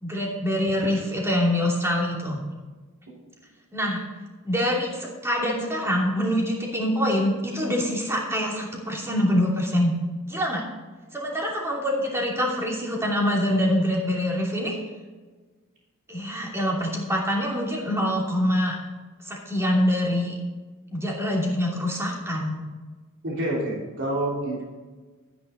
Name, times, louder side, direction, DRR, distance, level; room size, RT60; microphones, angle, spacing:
voice 1, 0.0-2.4 3.7-4.0 4.4-10.0 10.3-10.6 11.1-14.8 16.1-18.8 19.2-20.3 20.9-22.6, equal, 10° right, -2 dB, 2.8 m, -25 dB
voice 2, 23.2-24.7, right 1 dB, 60° right, -5 dB, 3.3 m, -27 dB
12.5 x 9.7 x 4.1 m, 1.3 s
head